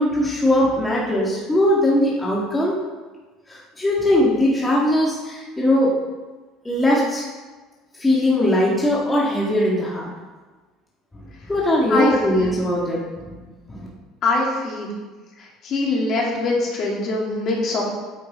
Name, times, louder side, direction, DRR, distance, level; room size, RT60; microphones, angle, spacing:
voice 1, 0.0-2.7 3.5-6.0 6.6-7.2 8.0-10.1 11.5-13.0 13.3-13.4 13.7-13.9, left 1 dB, 10° left, -5 dB, 1.7 m, -20 dB
voice 2, 11.9-12.5 14.2-14.9 15.6-17.8, left 2 dB, 45° left, -3 dB, 2.6 m, -23 dB
9.3 x 8.4 x 3.6 m, 1.3 s
cardioid pair, 135°, 0 cm